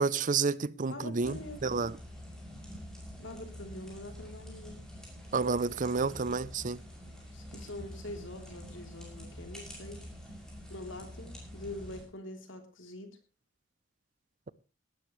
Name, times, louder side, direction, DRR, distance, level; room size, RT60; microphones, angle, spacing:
voice 1, 0.0-1.9 5.3-6.8, right 4 dB, 45° right, 0.6 m, -30 dB
voice 2, 0.9-1.6 3.2-4.8 7.3-10.0 10.7-13.2, left 2 dB, 80° left, 3.3 m, -44 dB
sound 1, 1.2-12.0, equal, 5° left, 6.2 m, -46 dB
18.0 x 13.0 x 3.2 m
head